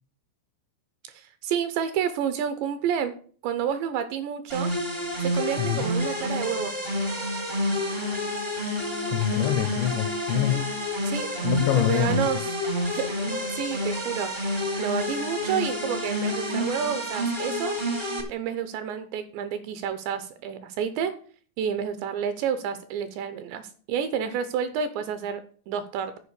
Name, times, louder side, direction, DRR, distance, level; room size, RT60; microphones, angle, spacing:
voice 1, 1.0-3.2 3.4-4.7 5.2-6.8 10.5-10.7 11.1-11.3 11.7-12.4 12.9-17.8 18.3-21.1 21.6-26.2, right 8 dB, 80° right, 2.7 m, -30 dB
sound 1, 4.5-18.2, left 1 dB, 50° right, 0.5 m, -29 dB
voice 2, 9.1-10.8 11.4-12.2, left 13 dB, 85° left, 2.6 m, -25 dB
10.0 x 5.1 x 8.1 m
omnidirectional pair, 5.7 m